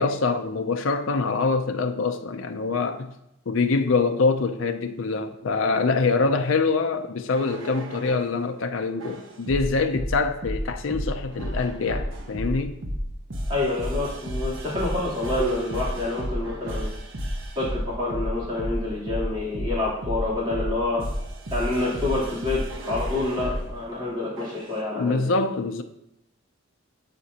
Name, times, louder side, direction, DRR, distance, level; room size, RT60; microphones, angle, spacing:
voice 1, 0.0-3.1 3.5-12.8 24.9-25.8, left 4 dB, 75° left, 0.5 m, -24 dB
sound 1, 7.3-8.3 9.0-23.7 24.4-24.7, equal, 70° right, 1.1 m, -31 dB
voice 2, 13.5-16.9 17.5-21.1 21.5-25.4, left 2 dB, 20° right, 3.2 m, -27 dB
12.0 x 5.0 x 2.9 m
head